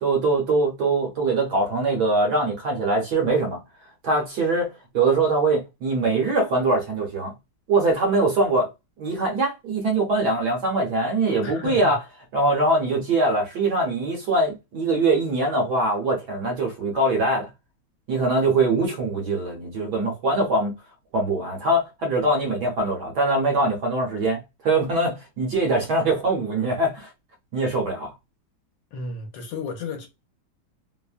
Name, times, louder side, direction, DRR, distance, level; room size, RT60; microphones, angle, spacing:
voice 1, 0.0-3.6 4.0-4.7 4.9-7.3 7.7-8.7 9.0-12.0 12.3-17.5 18.1-20.8 21.1-27.1 27.5-28.1, right 2 dB, 65° right, 1.2 m, -22 dB
voice 2, 11.4-12.0 28.9-30.1, left 4 dB, 70° left, 1.3 m, -33 dB
3.3 x 2.0 x 2.4 m
omnidirectional pair, 2.2 m